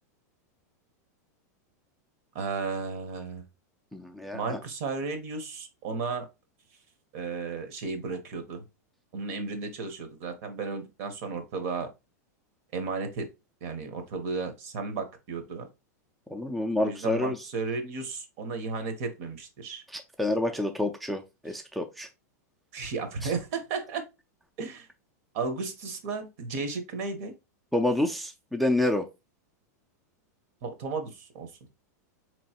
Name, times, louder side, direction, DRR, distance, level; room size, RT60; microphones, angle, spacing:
voice 1, 2.3-3.4 4.3-6.3 7.1-8.6 9.1-11.9 12.7-13.3 13.6-15.7 16.8-19.8 22.7-24.0 24.6-24.9 25.3-27.3 30.6-31.5, right 4 dB, 55° right, 0.9 m, -34 dB
voice 2, 3.9-4.6 16.3-17.4 19.9-22.1 23.2-23.3 27.7-29.1, left 1 dB, ahead, 0.3 m, -28 dB
3.9 x 3.0 x 2.8 m
supercardioid pair, 135°, 9 cm